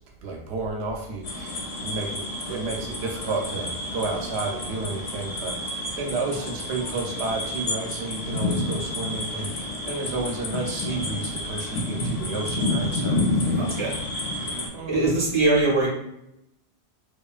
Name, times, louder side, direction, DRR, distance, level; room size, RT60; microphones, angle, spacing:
voice 1, 0.2-13.2 14.7-15.1, right 3 dB, 85° right, 0 dB, 0.8 m, -31 dB
sound 1, 1.2-14.7, left 2 dB, 90° left, 0.9 m, -29 dB
voice 2, 13.5-14.0 14.9-15.9, right 2 dB, 30° right, -5 dB, 0.8 m, -22 dB
2.9 x 2.3 x 2.3 m, 0.82 s
omnidirectional pair, 1.1 m